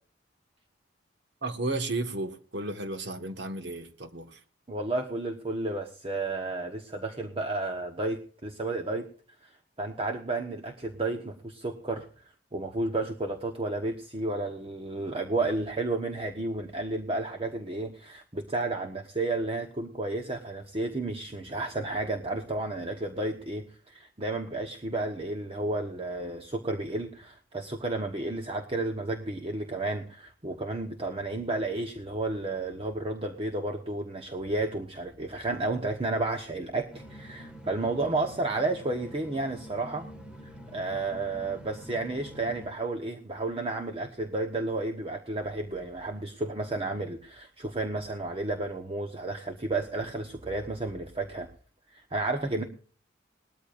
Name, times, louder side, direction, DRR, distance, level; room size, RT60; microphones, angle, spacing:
voice 1, 1.4-4.4, right 2 dB, 60° right, 1.6 m, -33 dB
voice 2, 4.7-9.1 9.4-9.5 9.8-12.1 12.5-40.1 40.7-51.5 51.9-52.6, right 2 dB, 30° right, 1.2 m, -32 dB
sound 1, 36.9-42.7, equal, 5° right, 1.8 m, -46 dB
20.5 x 13.5 x 2.6 m
head